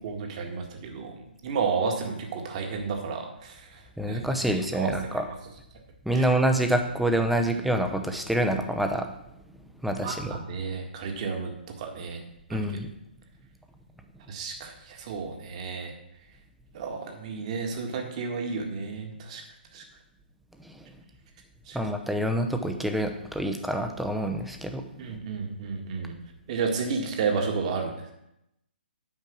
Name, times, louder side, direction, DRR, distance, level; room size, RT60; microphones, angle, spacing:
voice 1, 0.0-3.8 4.1-5.2 6.1-6.3 10.0-12.2 12.5-12.6 14.3-15.9 16.7-19.4 19.7-19.8 21.7-21.8 25.0-26.2 26.5-28.1, right 5 dB, 40° right, 4 dB, 1.8 m, -32 dB
voice 2, 4.0-5.2 6.1-9.1 9.8-10.3 12.5-12.9 21.7-24.8, right 1 dB, ahead, 5 dB, 0.8 m, -26 dB
8.9 x 5.7 x 6.1 m, 0.83 s
figure-of-eight pair, 130°, 6 cm